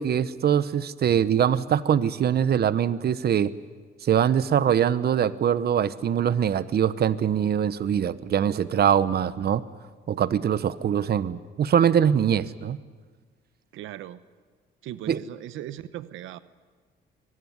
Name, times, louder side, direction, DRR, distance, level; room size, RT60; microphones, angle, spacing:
voice 1, 0.0-3.5 4.0-9.6 10.1-12.8 15.1-15.2, right 8 dB, 55° right, 16 dB, 0.9 m, -23 dB
voice 2, 13.7-14.2 14.8-16.4, right 13 dB, 85° right, 15 dB, 0.9 m, -38 dB
24.0 x 20.5 x 9.6 m, 1.5 s
cardioid pair, 90°, 20 cm